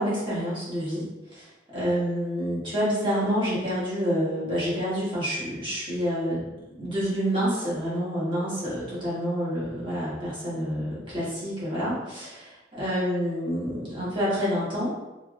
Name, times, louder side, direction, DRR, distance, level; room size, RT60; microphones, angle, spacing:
voice 1, 0.0-1.5 1.7-12.5 12.8-14.9, equal, 25° right, -9 dB, 1.2 m, -28 dB
3.4 x 3.0 x 2.4 m, 1.1 s
head